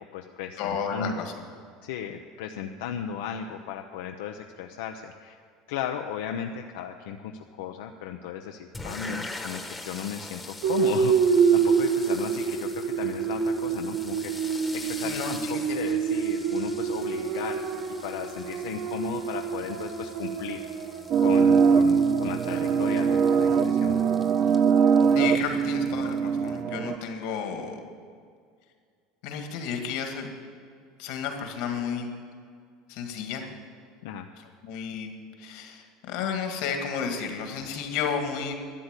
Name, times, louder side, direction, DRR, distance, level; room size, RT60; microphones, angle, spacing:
voice 1, 0.0-1.3 1.8-5.4 5.7-17.6 18.0-20.6 21.2-24.0 24.4-24.5 34.0-34.3, left 8 dB, 90° left, 4 dB, 0.7 m, -36 dB
voice 2, 0.6-1.3 15.0-15.6 22.5-22.6 25.1-27.8 29.2-30.3 31.0-32.1 32.9-33.4 34.6-35.1 35.4-38.5, left 6 dB, 65° left, 4 dB, 1.9 m, -32 dB
sound 1, 8.7-26.6, left 2 dB, 10° left, 1.1 m, -44 dB
sound 2, 10.6-24.8, right 6 dB, 50° right, 1.2 m, -28 dB
sound 3, 21.1-27.0, right 6 dB, 35° right, 0.4 m, -22 dB
12.5 x 9.9 x 8.1 m, 2.1 s
cardioid pair, 155°, 0 cm